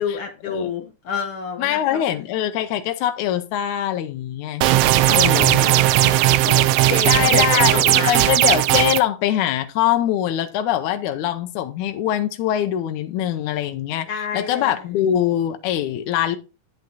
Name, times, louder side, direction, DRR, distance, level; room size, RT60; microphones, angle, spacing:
voice 1, 0.0-2.0 5.0-6.2 6.5-8.3 14.1-14.7, left 6 dB, 65° left, 1.5 m, -29 dB
voice 2, 1.6-4.6 5.1-5.7 7.1-16.4, left 11 dB, 80° left, 2.0 m, -23 dB
sound 1, 4.6-9.0, right 14 dB, 85° right, 1.4 m, -17 dB
10.5 x 7.8 x 2.8 m
omnidirectional pair, 3.6 m